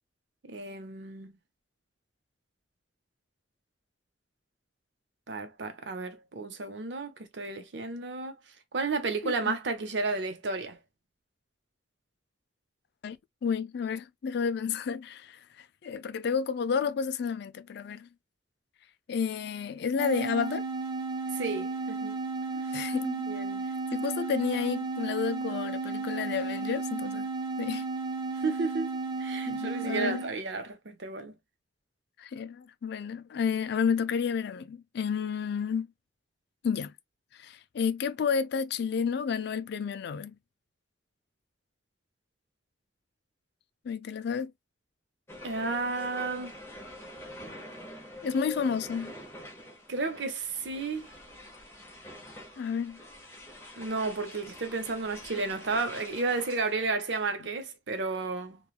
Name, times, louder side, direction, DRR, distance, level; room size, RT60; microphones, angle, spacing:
voice 1, 0.4-1.4 5.3-8.4 8.7-10.8 21.3-22.2 22.5-22.8 23.3-23.6 28.4-31.3 45.4-46.6 49.9-51.1 53.8-58.6, right 3 dB, 65° right, 0.7 m, -32 dB
voice 2, 13.0-18.1 19.1-20.7 22.7-23.4 23.9-27.3 27.6-27.8 29.4-30.2 32.2-35.9 36.6-36.9 37.3-40.4 43.8-44.5 48.2-49.1 52.6-53.0, left 6 dB, 60° left, 0.3 m, -31 dB
sound 1, 20.0-30.4, right 3 dB, 25° right, 0.5 m, -34 dB
sound 2, 45.3-56.7, left 1 dB, 15° left, 0.9 m, -45 dB
3.1 x 2.3 x 2.3 m
head